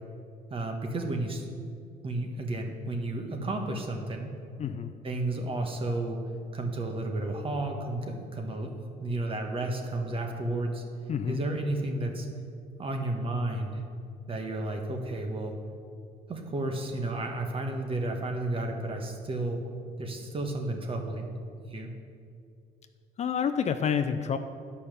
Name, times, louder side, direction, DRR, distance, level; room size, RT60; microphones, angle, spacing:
voice 1, 0.5-1.5 2.0-4.3 5.0-6.2 6.5-10.8 11.3-12.3 12.8-13.8 14.3-15.5 16.3-19.6 20.0-21.3 21.7-21.9, right 2 dB, 35° right, 3 dB, 1.4 m, -32 dB
voice 2, 4.6-4.9 11.1-11.4 23.2-24.4, left 7 dB, 40° left, 9 dB, 0.5 m, -28 dB
10.5 x 5.7 x 6.8 m, 2.4 s
cardioid pair, 110°, 17 cm